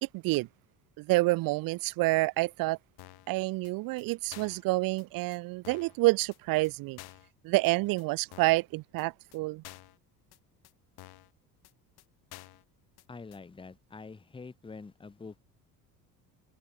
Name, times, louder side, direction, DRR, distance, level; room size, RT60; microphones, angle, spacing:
voice 1, 0.0-0.5 1.0-2.8 3.3-7.0 7.4-9.6, right 22 dB, 45° right, 0.6 m, -28 dB
sound 1, 3.0-3.3 3.6-3.7 4.0-4.1 4.3-4.6 5.0-5.1 5.3-5.4 5.6-6.0 6.3-6.4 6.6-6.7 7.0-7.3 7.6-7.7 8.0-8.1 8.3-8.6 9.0-9.1 9.3-9.4 9.6-10.0 10.3-10.4 10.6-10.7 11.0-11.3 11.6-11.7 12.0-12.1 12.3-12.6 13.0-13.1 13.3-13.4, left 18 dB, 50° left, 1.3 m, -50 dB
voice 2, 13.1-15.4, left 4 dB, 10° left, 0.9 m, -46 dB
figure-of-eight pair, 55°, 49 cm